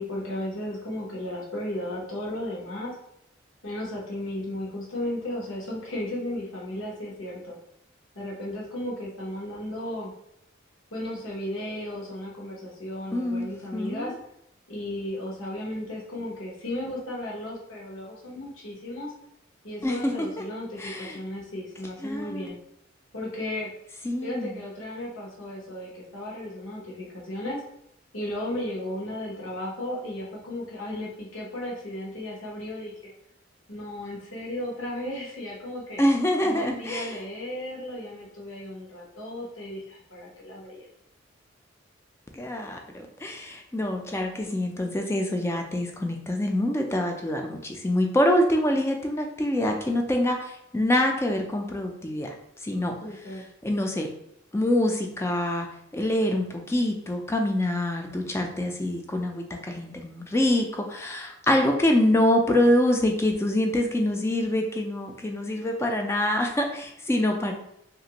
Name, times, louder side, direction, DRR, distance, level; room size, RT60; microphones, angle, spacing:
voice 1, 0.0-2.9 3.6-7.6 8.1-10.1 10.9-14.1 14.7-19.1 19.6-22.6 23.1-23.7 24.2-27.6 28.1-32.9 33.7-36.0 36.4-40.9 53.0-53.5, left 1 dB, 90° left, -3 dB, 0.9 m, -35 dB
voice 2, 13.1-14.1 19.8-20.3 20.8-21.2 22.0-22.5 24.0-24.6 36.0-37.2 42.3-52.3 52.6-53.0 53.6-54.1 54.5-55.7 55.9-67.5, left 1 dB, 15° left, 3 dB, 0.3 m, -25 dB
2.9 x 2.5 x 2.9 m, 0.76 s
head